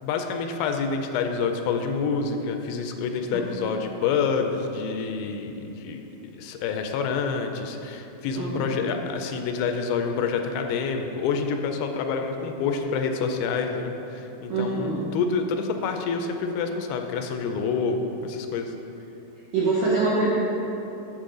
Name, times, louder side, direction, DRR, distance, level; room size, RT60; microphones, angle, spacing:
voice 1, 0.0-6.0 6.4-18.7, left 5 dB, 85° left, 5 dB, 2.4 m, -27 dB
voice 2, 8.3-8.7 14.5-15.0 19.5-20.2, right 3 dB, 75° right, -7 dB, 1.5 m, -24 dB
9.0 x 6.9 x 3.8 m, 3.0 s
omnidirectional pair, 4.4 m